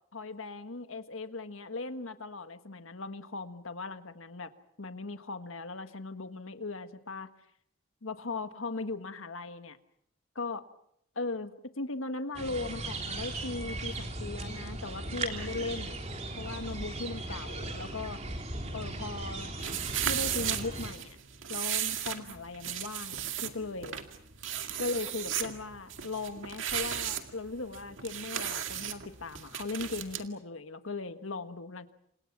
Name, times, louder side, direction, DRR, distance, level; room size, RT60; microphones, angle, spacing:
voice 1, 0.1-4.5 4.8-7.3 8.0-9.8 10.3-10.6 11.1-16.0 16.4-18.2 18.7-19.6 20.0-21.2 21.5-24.0 24.8-31.9, left 3 dB, 75° left, 9 dB, 1.5 m, -38 dB
sound 1, 12.3-20.9, right 2 dB, 30° right, 3.1 m, -38 dB
sound 2, 19.6-30.2, right 10 dB, 65° right, 2.1 m, -35 dB
28.5 x 27.5 x 6.1 m, 0.72 s
head